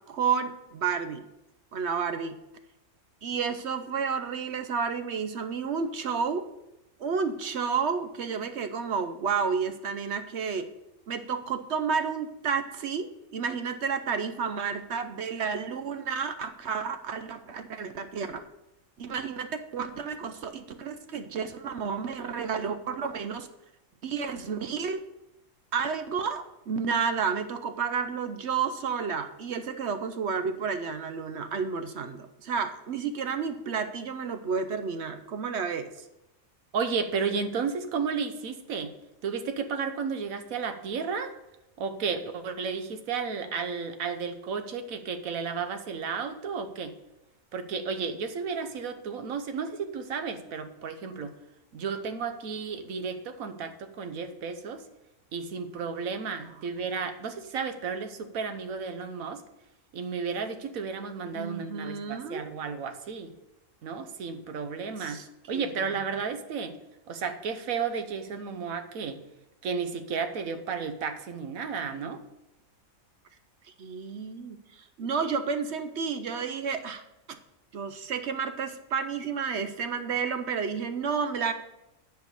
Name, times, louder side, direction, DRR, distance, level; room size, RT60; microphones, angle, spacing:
voice 1, 0.1-1.2 1.7-2.4 3.2-6.5 7.0-10.7 11.1-18.4 19.0-23.5 24.0-25.0 25.7-36.1 61.3-62.5 65.0-65.3 65.5-65.7 73.8-77.0 77.3-77.4 77.7-81.5, right 6 dB, 60° right, 9 dB, 0.9 m, -31 dB
voice 2, 36.7-38.9 39.2-41.3 41.8-46.9 47.5-51.3 51.7-54.8 55.3-59.4 59.9-63.3 63.8-65.2 65.5-66.8 67.1-69.2 69.6-72.2, right 5 dB, 80° right, 8 dB, 1.3 m, -33 dB
10.5 x 4.7 x 6.7 m, 0.89 s
omnidirectional pair, 1.4 m